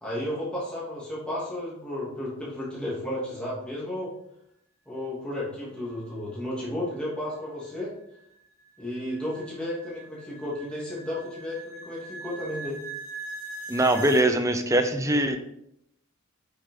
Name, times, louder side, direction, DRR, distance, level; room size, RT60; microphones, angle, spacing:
voice 1, 0.0-4.1 4.9-7.9 8.8-12.8, left 1 dB, 5° left, -8 dB, 2.7 m, -33 dB
sound 1, 7.3-14.3, right 2 dB, 70° left, 1.8 m, -41 dB
voice 2, 13.7-15.4, right 1 dB, 15° right, 7 dB, 0.8 m, -22 dB
8.6 x 6.9 x 3.9 m, 0.78 s
head